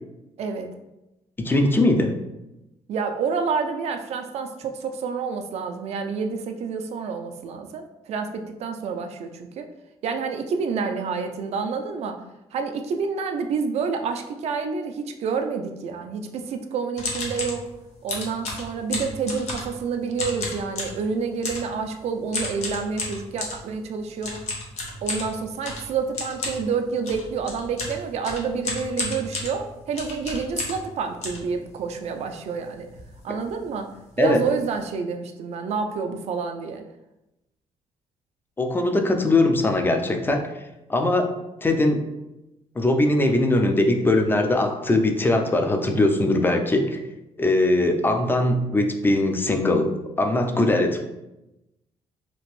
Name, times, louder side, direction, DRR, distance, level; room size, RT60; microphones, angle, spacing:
voice 1, 0.4-0.7 2.9-9.7 10.0-12.2 12.5-17.7 18.0-24.4 25.0-32.9 33.2-33.9 34.2-36.8, right 5 dB, 65° right, 6 dB, 0.4 m, -28 dB
voice 2, 1.4-2.1 34.2-34.4 38.6-40.5 40.9-41.3 41.6-42.0 42.8-47.0 47.4-49.9 50.2-51.0, left 2 dB, 15° left, 5 dB, 0.4 m, -21 dB
sound 1, 17.0-17.6 18.1-19.8 20.1-21.0 21.4-21.7 22.3-23.6 24.2-30.9 31.2-32.1 32.5-32.6 32.8-33.1 33.4-33.6 34.2-34.3 34.5-34.8, left 3 dB, 75° left, 0.8 m, -32 dB
2.9 x 2.5 x 3.0 m, 0.94 s
cardioid pair, 100°, 12 cm